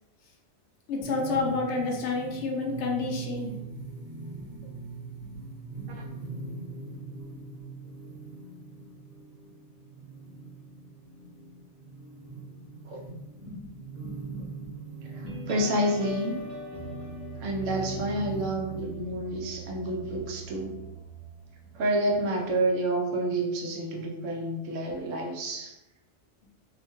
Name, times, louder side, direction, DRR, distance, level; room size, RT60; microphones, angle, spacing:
voice 1, 0.9-3.6 4.3-4.5 13.4-13.7 14.2-14.5, left 3 dB, 70° left, 1 dB, 0.8 m, -30 dB
sound 1, 1.0-19.0, right 4 dB, 45° right, 1.2 m, -42 dB
voice 2, 15.0-16.4 17.4-20.8 21.7-25.8, right 1 dB, 80° right, 0 dB, 1.0 m, -29 dB
sound 2, 15.3-22.4, right 2 dB, 60° right, 0.6 m, -41 dB
2.7 x 2.1 x 2.9 m, 0.99 s
omnidirectional pair, 1.3 m